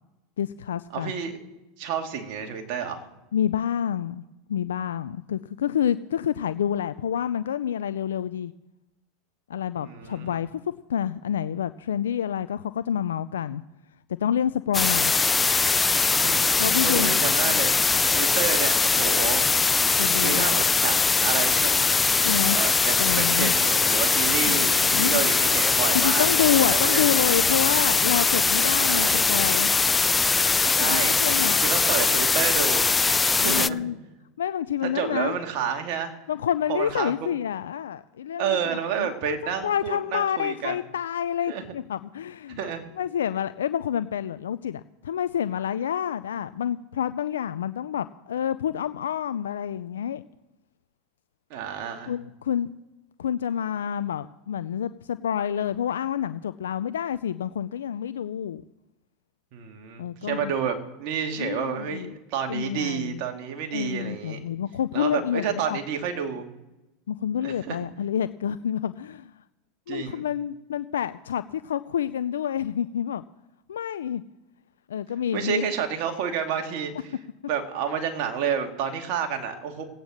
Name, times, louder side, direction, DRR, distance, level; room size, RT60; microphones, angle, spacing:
voice 1, 0.4-1.1 3.3-4.2 4.5-8.5 9.5-10.6 10.9-13.6 14.2-15.1 16.6-17.7 20.0-20.5 22.2-22.6 23.0-23.5 24.5-25.1 25.9-29.7 30.8-31.6 33.4-34.0 34.4-35.4 36.3-39.4 39.6-42.7 43.0-50.2 52.1-52.7 53.2-58.6 60.0-60.5 61.4-62.1 62.5-63.2 63.7-65.8 67.1-69.4 69.9-73.2 73.7-74.2 74.9-75.7, left 9 dB, 90° left, 13 dB, 0.4 m, -28 dB
voice 2, 0.9-1.4 1.8-3.0 9.8-10.3 16.1-16.4 16.8-19.6 19.9-22.0 22.5-27.0 28.9-29.3 30.7-31.2 31.6-32.9 33.3-33.9 34.9-36.1 36.7-37.1 38.4-40.7 41.5-41.6 42.5-42.9 51.5-52.1 59.5-64.4 64.9-66.5 67.4-67.8 69.9-70.2 75.3-76.9 77.5-79.8, right 7 dB, 60° right, 4 dB, 2.5 m, -30 dB
sound 1, 14.7-33.7, left 4 dB, 15° left, 0.4 m, -21 dB
17.5 x 9.0 x 6.4 m, 1.0 s
hypercardioid pair, 100°, 0 cm